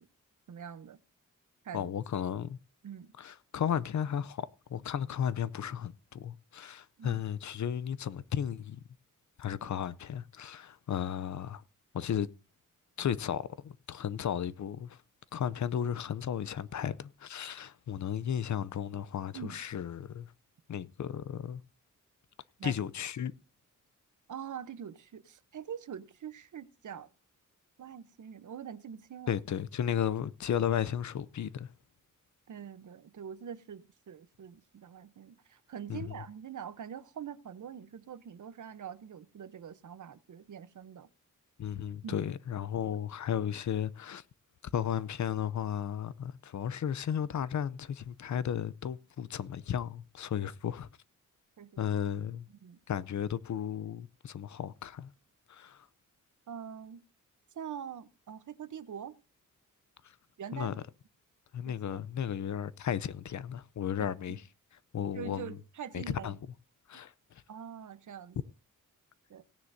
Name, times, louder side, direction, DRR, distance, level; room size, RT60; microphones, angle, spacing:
voice 1, 0.5-1.0 1.6-1.9 2.8-3.1 7.0-7.2 19.3-19.6 22.6-22.8 24.3-27.1 27.8-29.4 32.5-41.1 42.0-42.2 51.6-51.8 52.5-52.8 56.5-57.0 57.5-59.2 60.4-60.8 61.7-62.0 64.0-64.4 65.1-66.3 67.5-68.4 69.3-69.4, right 8 dB, 70° right, 0.8 m, -44 dB
voice 2, 1.7-2.6 3.2-8.8 9.4-11.6 11.9-12.3 13.0-15.0 15.3-20.3 20.7-21.6 22.6-23.3 29.3-31.7 35.9-36.1 41.6-44.2 44.7-50.9 51.8-52.5 52.9-55.1 55.5-55.9 60.5-60.7 61.5-64.4 64.9-65.6 65.9-66.4 66.9-67.1, left 9 dB, 65° left, 0.6 m, -34 dB
17.5 x 9.7 x 2.7 m
wide cardioid pair, 145°, 32 cm